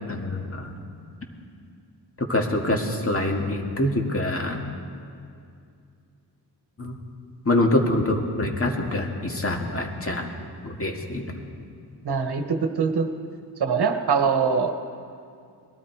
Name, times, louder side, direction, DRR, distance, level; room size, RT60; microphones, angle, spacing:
voice 1, 0.1-0.7 2.2-4.6 6.8-7.0 7.5-10.3 10.6-11.4, left 1 dB, 30° left, 1 dB, 2.1 m, -25 dB
voice 2, 12.0-13.1 13.6-14.7, right 5 dB, 65° right, 6 dB, 1.3 m, -23 dB
20.5 x 13.0 x 4.7 m, 2.4 s
cardioid pair, 75°, 43 cm